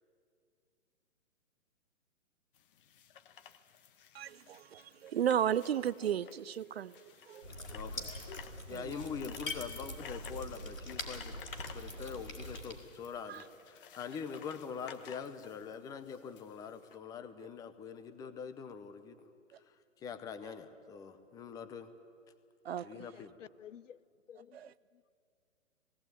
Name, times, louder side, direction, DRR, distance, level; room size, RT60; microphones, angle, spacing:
sound 1, 2.5-17.0, left 8 dB, 40° left, 1.2 m, -55 dB
voice 1, 4.1-7.0 7.3-7.5 8.7-8.8 13.3-13.4 22.7-22.9 24.5-24.7, right 9 dB, 50° right, 0.6 m, -34 dB
sound 2, 7.4-12.7, left 1 dB, 90° left, 4.5 m, -43 dB
voice 2, 7.7-8.1 8.7-11.3 11.7-19.3 19.7-21.9 22.8-23.4, left 6 dB, 10° left, 0.7 m, -44 dB
voice 3, 23.0-24.0 24.3-24.7, left 9 dB, 70° left, 0.6 m, -53 dB
18.5 x 17.5 x 9.2 m
figure-of-eight pair, 125°, 40 cm